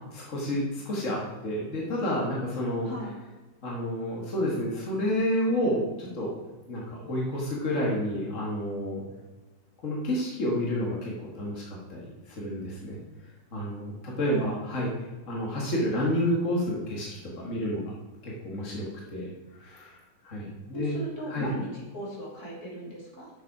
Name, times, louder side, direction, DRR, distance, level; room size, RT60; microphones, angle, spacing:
voice 1, 0.1-1.2 1.4-2.9 3.6-6.3 6.7-9.0 9.8-13.0 13.5-14.9 15.3-17.1 17.4-17.8 18.2-20.0 20.2-21.0 21.3-21.5, left 1 dB, 45° left, -4 dB, 1.0 m, -30 dB
voice 2, 14.3-14.6 20.7-23.3, right 1 dB, 30° left, -4 dB, 2.6 m, -37 dB
8.0 x 6.9 x 4.8 m, 1.2 s
omnidirectional pair, 4.0 m